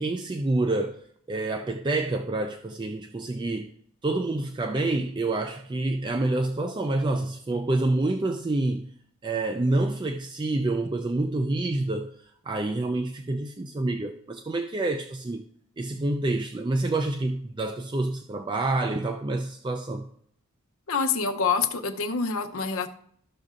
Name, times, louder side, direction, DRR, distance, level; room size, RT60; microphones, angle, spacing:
voice 1, 0.0-3.7 4.0-8.9 9.2-15.4 15.8-20.1, right 2 dB, 20° right, 0.3 m, -27 dB
voice 2, 20.9-22.9, left 5 dB, 70° left, 0.7 m, -26 dB
13.0 x 6.4 x 2.5 m
head